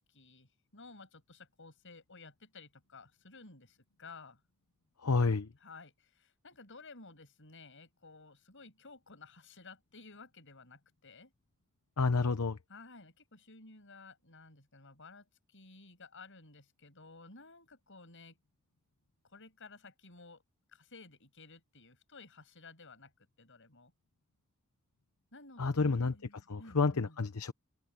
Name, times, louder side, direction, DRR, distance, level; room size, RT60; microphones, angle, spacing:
voice 1, 0.1-4.4 5.6-11.3 12.7-18.4 19.2-20.4 20.7-23.1 23.4-23.9 25.3-27.2, left 3 dB, 60° left, 7.8 m, -54 dB
voice 2, 5.0-5.5 12.0-12.6 25.6-26.1 26.5-27.5, left 4 dB, 80° left, 0.9 m, -29 dB
head